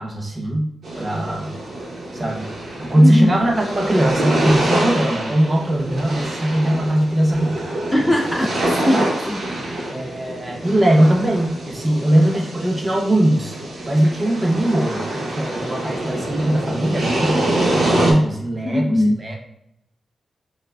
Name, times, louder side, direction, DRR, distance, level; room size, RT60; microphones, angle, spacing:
voice 1, 0.0-1.5 2.1-2.5 2.8-7.7 8.0-8.1 9.9-13.6 13.8-19.4, right 1 dB, 25° right, 0 dB, 0.8 m, -20 dB
sound 1, 0.8-18.1, right 1 dB, 70° right, 1.0 m, -25 dB
voice 2, 2.9-3.3 7.9-9.4 18.6-19.2, left 1 dB, 10° left, 0 dB, 0.4 m, -20 dB
5.4 x 2.4 x 2.3 m, 0.76 s
wide cardioid pair, 115°, 0 cm